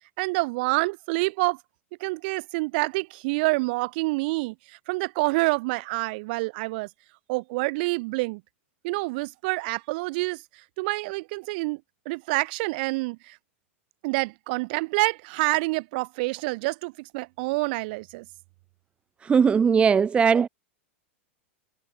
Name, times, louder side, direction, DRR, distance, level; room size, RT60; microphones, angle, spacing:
voice 1, 0.2-1.6 2.0-6.9 7.3-8.4 8.8-10.4 10.8-11.8 12.1-13.4 14.0-18.3, right 25 dB, 50° right, 7.3 m, -27 dB
voice 2, 19.2-20.5, right 6 dB, 15° right, 0.5 m, -19 dB
figure-of-eight pair, 90°, 7 cm